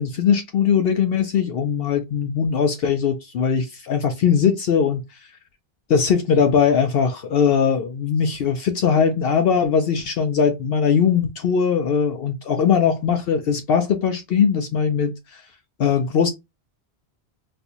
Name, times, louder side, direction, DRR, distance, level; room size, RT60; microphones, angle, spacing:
voice 1, 0.0-5.0 5.9-15.4 15.8-16.3, left 7 dB, 65° left, 0.8 m, -20 dB
4.2 x 2.4 x 2.5 m
omnidirectional pair, 1.1 m